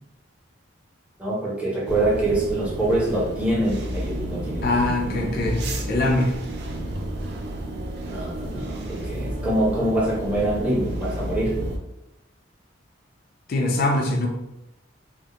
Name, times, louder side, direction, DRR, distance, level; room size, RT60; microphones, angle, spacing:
voice 1, 1.2-4.9 8.0-11.6, right 1 dB, 5° right, -6 dB, 0.6 m, -25 dB
sound 1, 1.9-11.8, right 1 dB, 60° right, 0.4 m, -31 dB
voice 2, 4.6-6.3 13.5-14.3, left 2 dB, 50° left, 0 dB, 0.4 m, -23 dB
2.1 x 2.0 x 2.8 m, 0.92 s
head